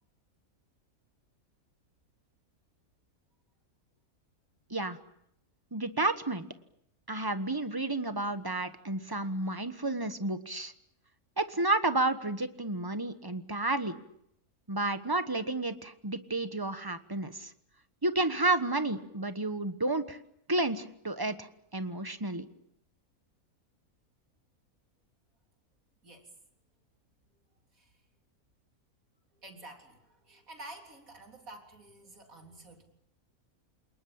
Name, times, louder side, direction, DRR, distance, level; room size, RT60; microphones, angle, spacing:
voice 1, 5.7-6.5 7.1-10.7 11.4-14.0 14.7-17.5 18.0-20.2 20.5-21.5 21.7-22.5, right 2 dB, 15° right, 11 dB, 1.2 m, -31 dB
voice 2, 26.0-26.4 27.3-27.4 27.7-28.0 29.3-32.8, right 2 dB, 65° right, 3 dB, 4.1 m, -50 dB
28.5 x 19.5 x 8.7 m, 0.76 s
omnidirectional pair, 1.5 m